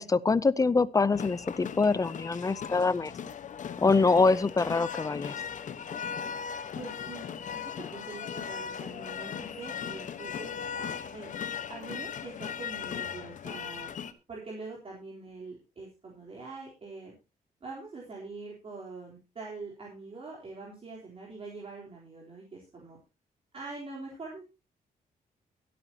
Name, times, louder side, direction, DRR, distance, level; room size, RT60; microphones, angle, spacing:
voice 1, 0.0-3.1 3.8-5.4, left 4 dB, 20° left, 0.5 m, -24 dB
sound 1, 1.1-14.1, left 7 dB, 55° left, 1.2 m, -38 dB
voice 2, 6.7-11.3 11.7-13.9 14.3-17.1 17.6-23.0 23.5-24.4, right 3 dB, 40° right, 3.7 m, -44 dB
23.5 x 8.5 x 2.8 m
cardioid pair, 120°, 15 cm